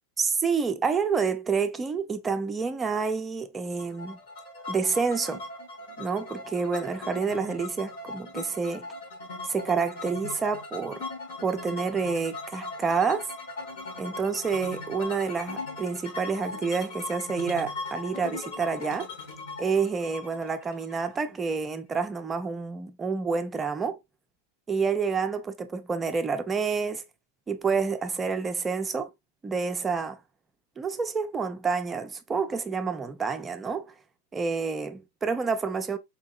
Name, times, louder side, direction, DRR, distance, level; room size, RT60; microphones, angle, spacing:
voice 1, 0.2-4.2 4.7-5.4 6.0-8.9 9.5-11.0 11.4-13.3 14.0-19.1 19.6-24.0 24.7-27.0 27.5-29.1 29.4-30.2 30.8-33.9 34.3-36.0, right 5 dB, 15° right, 0.5 m, -28 dB
sound 1, 3.8-21.5, left 3 dB, 55° left, 1.1 m, -39 dB
4.2 x 2.7 x 2.3 m
figure-of-eight pair, 90°, 0 cm